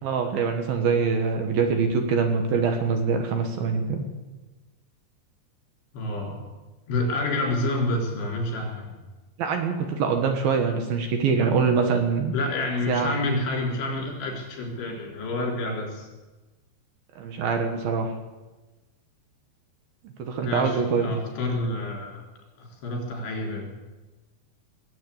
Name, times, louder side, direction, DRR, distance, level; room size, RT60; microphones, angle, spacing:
voice 1, 0.0-4.1 9.4-12.3 12.9-13.2 17.2-18.1 20.2-21.2, right 5 dB, 65° right, 5 dB, 2.7 m, -24 dB
voice 2, 5.9-6.4 6.9-8.9 12.3-16.1 20.4-22.2 22.6-23.7, left 2 dB, 70° left, -1 dB, 6.2 m, -28 dB
20.0 x 8.7 x 8.5 m, 1.2 s
omnidirectional pair, 5.1 m